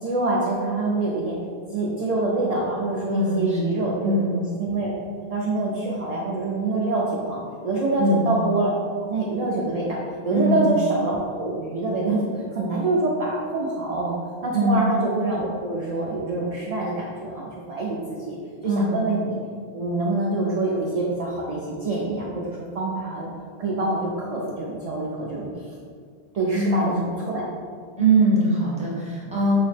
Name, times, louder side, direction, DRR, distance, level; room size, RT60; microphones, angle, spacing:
voice 1, 0.0-1.4 1.7-5.0 5.3-7.4 7.6-8.7 9.1-10.0 10.2-12.2 12.5-14.2 14.4-18.4 18.6-19.4 19.7-23.3 23.6-25.7 26.3-27.4, right 2 dB, 55° right, -4 dB, 0.4 m, -25 dB
voice 2, 3.1-4.3 8.0-8.3 10.3-10.6 14.5-14.9 18.6-19.0 26.5-26.9 28.0-29.6, right 2 dB, 10° right, -6 dB, 0.7 m, -22 dB
4.6 x 2.0 x 3.2 m, 2.1 s
omnidirectional pair, 1.0 m